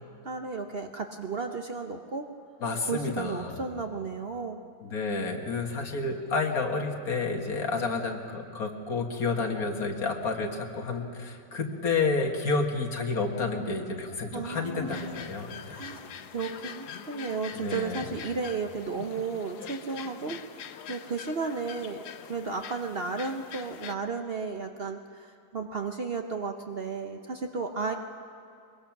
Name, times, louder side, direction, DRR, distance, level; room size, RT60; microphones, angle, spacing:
voice 1, 0.2-2.3 2.9-4.6 14.3-15.3 15.7-20.6 20.9-27.9, right 4 dB, 45° right, 4 dB, 0.9 m, -34 dB
voice 2, 2.6-3.7 4.8-15.8 17.5-18.1, left 3 dB, 65° left, 3 dB, 2.1 m, -30 dB
sound 1, 14.9-24.0, left 8 dB, 80° left, 1.3 m, -44 dB
22.0 x 22.0 x 5.9 m, 2.5 s
omnidirectional pair, 1.7 m